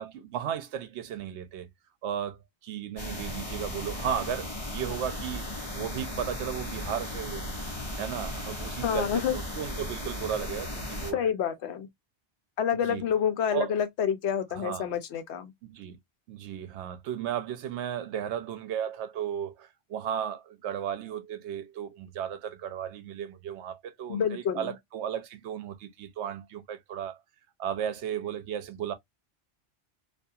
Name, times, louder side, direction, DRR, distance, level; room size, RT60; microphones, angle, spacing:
voice 1, 0.0-1.7 2.0-7.5 8.0-11.3 12.7-13.1 13.5-13.7 14.6-14.9 15.7-16.0 16.3-27.2 27.6-28.9, right 9 dB, 80° right, 0.9 m, -35 dB
sound 1, 3.0-11.1, left 1 dB, 25° left, 0.9 m, -36 dB
voice 2, 8.8-9.4 11.1-11.9 12.6-15.5 24.1-24.7, left 8 dB, 80° left, 0.9 m, -28 dB
2.5 x 2.3 x 2.6 m
omnidirectional pair, 1.1 m